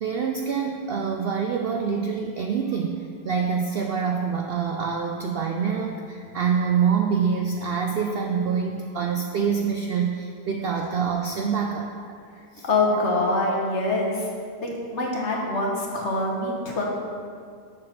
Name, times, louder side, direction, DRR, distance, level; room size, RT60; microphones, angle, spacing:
voice 1, 0.0-3.0 3.2-12.1 12.6-12.7, right 6 dB, 75° right, 2 dB, 0.5 m, -26 dB
voice 2, 12.6-14.3 14.6-16.8, left 2 dB, 50° left, -2 dB, 1.4 m, -24 dB
7.1 x 4.6 x 6.5 m, 2.2 s
omnidirectional pair, 1.5 m